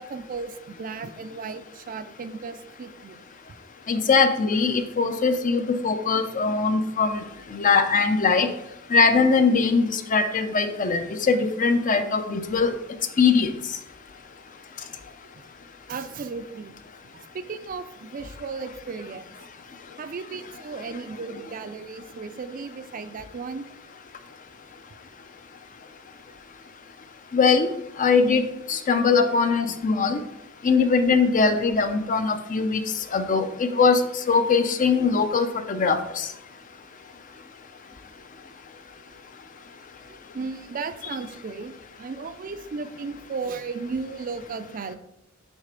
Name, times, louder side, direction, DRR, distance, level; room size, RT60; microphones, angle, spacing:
voice 1, 0.0-3.2 15.9-16.8 17.0-19.4 20.0-23.6 40.1-44.9, right 4 dB, 40° right, 10 dB, 0.4 m, -35 dB
voice 2, 3.9-7.2 7.5-8.5 8.9-12.7 13.2-13.5 27.3-27.7 28.0-30.2 30.6-32.8 33.1-34.0 34.3-36.3, left 4 dB, 40° left, 9 dB, 0.5 m, -21 dB
6.3 x 3.3 x 5.1 m, 0.84 s
head